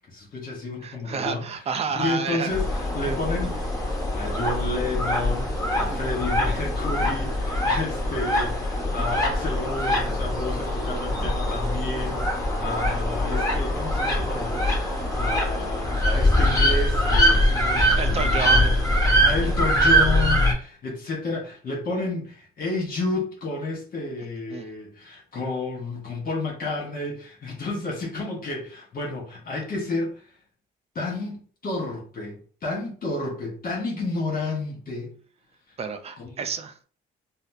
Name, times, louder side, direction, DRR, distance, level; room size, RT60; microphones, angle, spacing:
voice 1, 0.1-1.6 1.9-3.7 4.1-18.7 19.0-30.2 30.9-35.1 36.2-36.4, left 3 dB, 45° left, 1.3 m, -31 dB
voice 2, 0.8-2.5 3.0-3.2 5.9-6.0 18.0-18.7 24.5-24.7 35.8-36.8, right 6 dB, 30° right, 0.5 m, -30 dB
sound 1, 2.5-20.5, equal, 15° left, 1.2 m, -23 dB
4.0 x 2.0 x 2.7 m
cardioid pair, 90°, 20 cm